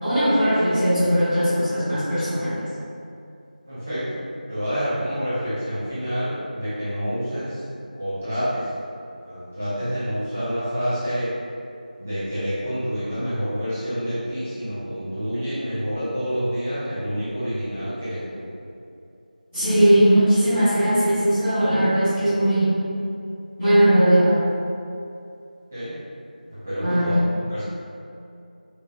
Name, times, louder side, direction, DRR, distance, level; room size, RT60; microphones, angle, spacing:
voice 1, 0.0-2.6 19.5-22.8 23.6-24.4 26.8-27.2, right 1 dB, 15° left, -23 dB, 1.1 m, -19 dB
voice 2, 3.7-4.2 4.5-7.6 8.0-8.7 9.2-11.4 12.0-18.4 25.7-26.0 26.5-27.6, equal, 10° right, -15 dB, 0.5 m, -28 dB
4.8 x 2.4 x 2.3 m, 2.6 s
figure-of-eight pair, 175°, 5 cm